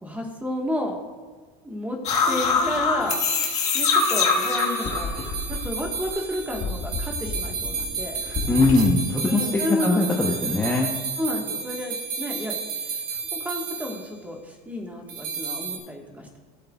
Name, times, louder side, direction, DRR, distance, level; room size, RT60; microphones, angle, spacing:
voice 1, 0.0-1.0 1.6-2.0 2.3-3.2 3.7-5.1 5.5-8.2 9.2-10.0 11.2-16.4, left 1 dB, 10° right, 1 dB, 1.5 m, -31 dB
sound 1, 2.0-6.1 6.4-8.8, left 5 dB, 35° left, 1.6 m, -25 dB
sound 2, 3.0-14.1 15.1-15.8, right 5 dB, 45° right, 2.7 m, -32 dB
voice 2, 8.2-11.0, left 2 dB, 10° left, -1 dB, 0.8 m, -22 dB
16.0 x 7.9 x 2.4 m, 1.5 s
supercardioid pair, 140°, 19 cm